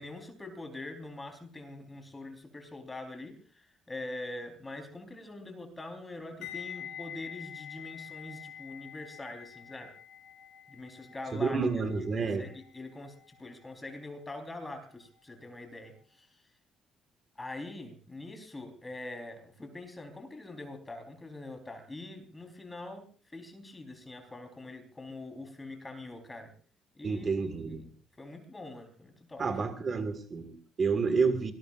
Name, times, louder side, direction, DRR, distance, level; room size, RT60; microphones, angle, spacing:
voice 1, 0.0-9.9 10.7-11.6 12.2-16.5 17.4-26.5 26.9-27.9 28.2-29.4, left 2 dB, 15° left, 6 dB, 4.2 m, -44 dB
sound 1, 6.4-15.4 15.6-15.9, left 9 dB, 90° left, 4.4 m, -47 dB
voice 2, 11.4-12.4 27.0-27.8 29.4-31.5, right 4 dB, 30° right, 8 dB, 2.0 m, -29 dB
25.0 x 20.0 x 2.6 m, 0.41 s
cardioid pair, 160°, 0 cm